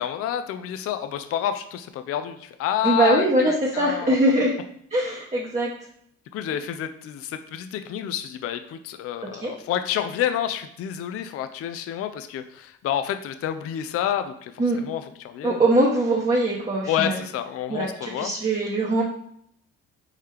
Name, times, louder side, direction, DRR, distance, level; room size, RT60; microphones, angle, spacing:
voice 1, 0.0-4.2 6.3-14.5 14.8-15.6 16.9-18.3, left 10 dB, 40° left, 9 dB, 0.4 m, -29 dB
voice 2, 2.8-4.5 4.9-5.7 9.4-9.5 14.6-14.8 15.4-17.2 17.7-19.0, right 1 dB, 20° right, -4 dB, 1.0 m, -22 dB
4.2 x 3.6 x 3.3 m, 0.69 s
hypercardioid pair, 50°, 37 cm